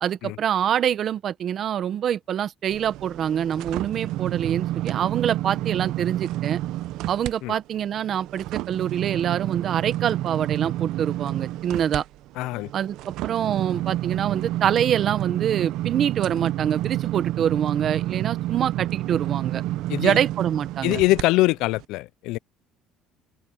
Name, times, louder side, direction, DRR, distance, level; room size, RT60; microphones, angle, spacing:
voice 1, 0.0-6.6 7.1-12.1 12.7-19.6 20.0-21.0, right 9 dB, 40° right, 1.0 m, -25 dB
sound 1, 2.7-7.3 7.7-21.2 21.7-21.9, right 15 dB, 70° right, 0.6 m, -29 dB
voice 2, 12.4-12.7 19.9-20.2 20.8-22.4, left 19 dB, 75° left, 0.3 m, -23 dB
open air
cardioid pair, 150°, 0 cm